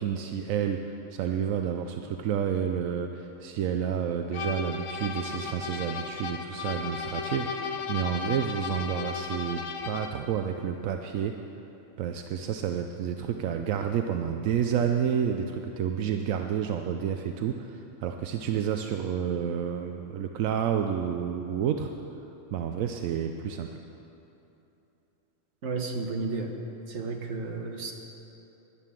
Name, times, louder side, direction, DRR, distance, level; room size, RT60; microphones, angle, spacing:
voice 1, 0.0-11.3 12.0-21.9 22.5-23.7, right 8 dB, 85° right, 5 dB, 1.0 m, -30 dB
sound 1, 4.3-10.3, left 5 dB, 85° left, 1.2 m, -35 dB
voice 2, 25.6-26.5 26.9-27.9, right 3 dB, 60° right, 3 dB, 1.5 m, -32 dB
11.0 x 10.5 x 7.5 m, 2.9 s
omnidirectional pair, 1.4 m